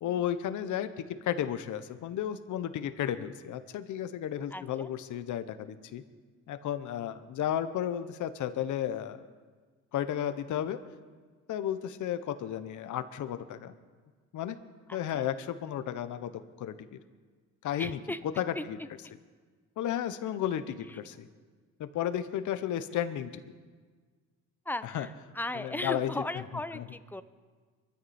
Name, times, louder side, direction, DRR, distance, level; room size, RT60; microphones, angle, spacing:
voice 1, 0.0-6.0 6.5-9.2 9.9-10.8 11.5-13.7 14.3-14.6 14.9-16.3 16.6-17.0 17.6-18.0 18.4-18.8 19.8-21.3 21.8-23.4 24.9-25.1 25.5-26.1 26.7-26.8, left 10 dB, 75° left, 11 dB, 1.0 m, -33 dB
voice 2, 4.5-4.9 14.9-15.3 17.8-18.2 18.5-18.6 20.9-21.0 24.6-27.2, left 1 dB, 5° left, 13 dB, 0.7 m, -37 dB
23.0 x 14.0 x 4.3 m, 1.5 s
cardioid pair, 90°, 30 cm